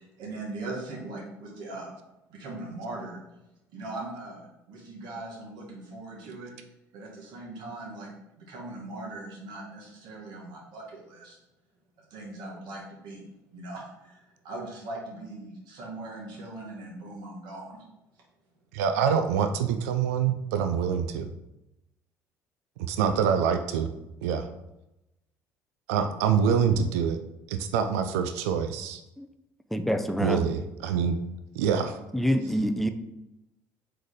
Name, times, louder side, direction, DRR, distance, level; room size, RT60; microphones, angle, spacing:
voice 1, 0.0-2.0 2.3-3.2 3.7-8.1 8.4-11.4 12.1-17.8, right 2 dB, 65° right, -3 dB, 1.6 m, -40 dB
voice 2, 18.7-21.3 22.8-23.9 24.2-24.5 25.9-27.2 27.5-29.0 30.2-31.2 31.5-32.0, right 7 dB, 85° right, 8 dB, 0.4 m, -25 dB
voice 3, 29.7-30.4 32.1-32.9, equal, ahead, 8 dB, 0.5 m, -26 dB
3.9 x 3.2 x 4.0 m, 0.91 s
hypercardioid pair, 65°, 8 cm